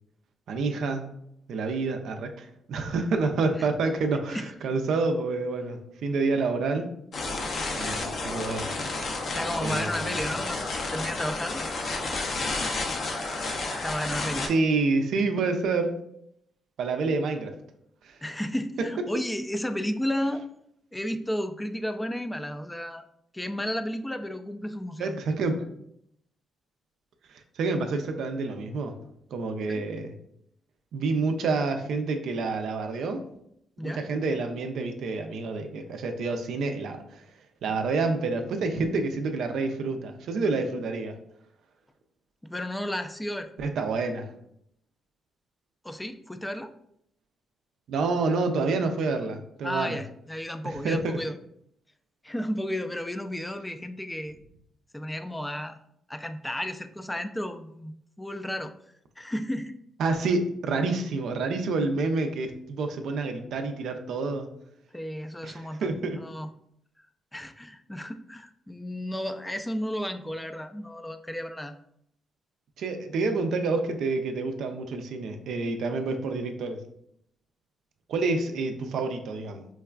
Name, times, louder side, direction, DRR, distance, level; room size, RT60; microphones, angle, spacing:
voice 1, 0.5-1.1 1.5-6.9 7.7-8.7 9.6-10.2 14.5-16.0 16.8-17.5 18.0-18.2 25.0-25.6 27.3-28.9 29.3-30.1 30.9-33.2 33.8-37.2 37.6-41.2 43.6-44.3 47.9-50.0 50.8-51.2 60.0-64.5 65.4-66.2 72.8-76.8 78.1-79.7, right 3 dB, 75° right, 5 dB, 0.4 m, -28 dB
sound 1, 7.1-14.5, left 3 dB, 60° left, 0.5 m, -31 dB
voice 2, 9.3-11.6 13.8-14.5 18.2-20.5 20.9-23.0 23.3-25.2 29.7-29.8 33.8-34.0 42.4-43.5 45.8-46.7 49.6-51.4 52.2-54.4 54.9-55.8 56.1-58.7 59.2-59.8 64.9-66.5 67.3-71.8, equal, 10° left, 8 dB, 0.3 m, -33 dB
4.6 x 2.3 x 2.2 m, 0.73 s
supercardioid pair, 55°, 0 cm